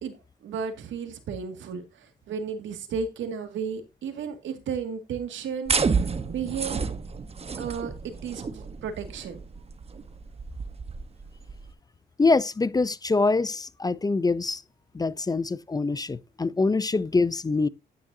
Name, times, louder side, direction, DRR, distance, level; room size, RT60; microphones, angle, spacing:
voice 1, 0.0-6.9 7.6-9.4, right 6 dB, 75° right, 2.1 m, -34 dB
sound 1, 5.7-11.7, right 5 dB, 30° right, 1.1 m, -30 dB
voice 2, 12.2-14.6 14.9-17.7, left 3 dB, 20° left, 0.6 m, -24 dB
11.0 x 9.4 x 2.7 m
cardioid pair, 90°, 20 cm